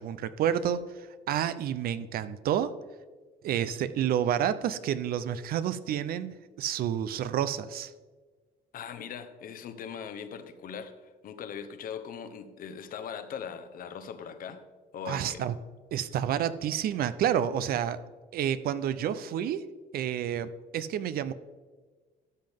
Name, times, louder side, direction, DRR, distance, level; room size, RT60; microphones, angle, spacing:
voice 1, 0.0-2.7 3.4-7.9 15.1-15.5 15.9-18.0 18.3-19.6 19.9-21.3, right 9 dB, 60° right, 13 dB, 0.6 m, -29 dB
voice 2, 8.7-14.6 14.9-15.4, left 7 dB, 55° left, 9 dB, 0.9 m, -40 dB
12.5 x 7.6 x 3.6 m, 1.4 s
cardioid pair, 110°, 17 cm